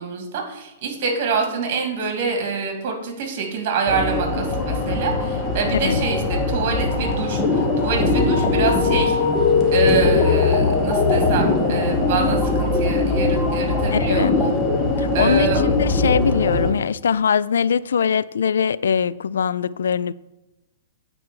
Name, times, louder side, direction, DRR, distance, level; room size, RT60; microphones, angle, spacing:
voice 1, 0.0-9.2 9.7-14.3 15.1-15.6, right 5 dB, 45° right, 2.4 m, -26 dB
sound 1, 3.9-16.7, left 3 dB, 15° left, 1.4 m, -20 dB
voice 2, 13.9-14.4 15.0-20.1, left 7 dB, 85° left, 0.3 m, -22 dB
8.7 x 4.6 x 7.0 m
hypercardioid pair, 145°, 0 cm